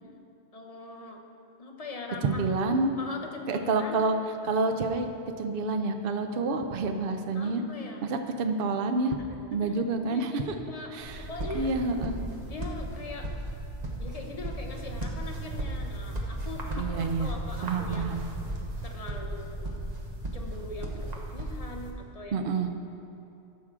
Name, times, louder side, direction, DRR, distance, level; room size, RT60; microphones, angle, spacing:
voice 1, 0.5-1.2 1.6-2.4 3.0-4.0 7.3-8.0 9.5-9.7 10.1-10.4 10.7-10.9 11.2-11.7 12.5-13.3 14.0-18.2 18.8-19.7 20.3-22.7, left 3 dB, 35° left, 2 dB, 0.8 m, -41 dB
voice 2, 2.2-2.9 3.5-4.1 4.4-5.1 5.4-7.6 8.0-9.2 9.5-10.5 10.9-11.3 11.5-12.2 16.8-17.3 17.6-18.2 22.3-22.7, right 3 dB, 60° right, 6 dB, 0.8 m, -28 dB
sound 1, 11.0-21.9, right 1 dB, 40° right, 1.1 m, -35 dB
14.0 x 6.1 x 3.7 m, 2.7 s
omnidirectional pair, 1.2 m